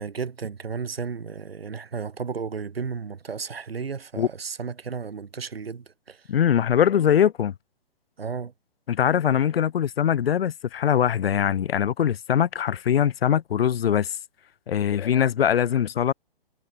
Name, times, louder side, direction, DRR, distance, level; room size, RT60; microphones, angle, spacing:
voice 1, 0.0-6.2 8.2-8.5, right 5 dB, 90° right, 3.5 m, -33 dB
voice 2, 6.3-7.5 8.9-14.2 14.7-16.1, left 9 dB, 85° left, 0.7 m, -22 dB
hypercardioid pair, 145°, 29 cm